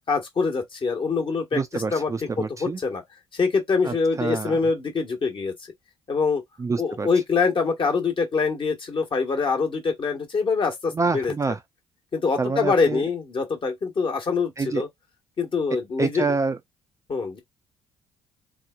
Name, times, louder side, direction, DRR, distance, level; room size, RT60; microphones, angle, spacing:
voice 1, 0.1-2.1 2.4-3.0 3.3-5.5 6.1-6.4 6.8-11.3 12.1-14.9 15.4-16.2 17.1-17.4, left 4 dB, 40° left, 1.2 m, -24 dB
voice 2, 1.5-2.8 3.8-4.6 6.6-7.1 10.9-11.6 12.4-13.0 14.6-14.9 16.0-16.6, right 4 dB, 25° right, 0.4 m, -27 dB
2.9 x 2.0 x 2.3 m
hypercardioid pair, 55°, 13 cm